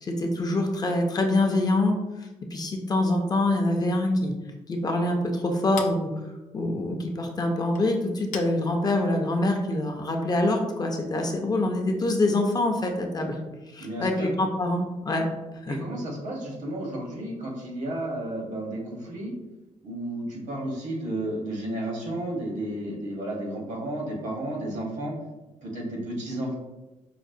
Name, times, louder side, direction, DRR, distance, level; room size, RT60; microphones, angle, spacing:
voice 1, 0.0-4.3 4.7-6.1 6.5-13.4 13.7-15.3 15.7-15.8, left 2 dB, 30° left, 3 dB, 0.4 m, -25 dB
Chink clink, 4.5-10.0, left 6 dB, 90° left, 0.4 m, -46 dB
voice 2, 13.8-14.3 15.7-19.3 19.8-25.1 25.6-26.5, right 1 dB, 65° right, -1 dB, 1.0 m, -32 dB
4.9 x 2.0 x 2.5 m, 1.1 s
cardioid pair, 130°, 13 cm